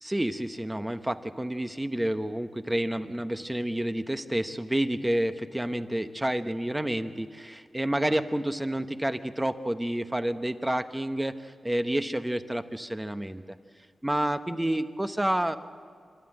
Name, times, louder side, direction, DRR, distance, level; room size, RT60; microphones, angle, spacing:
voice 1, 0.0-13.4 14.0-15.6, right 1 dB, 10° right, 9 dB, 1.0 m, -29 dB
25.0 x 13.0 x 9.0 m, 2.1 s
wide cardioid pair, 85°, 0 cm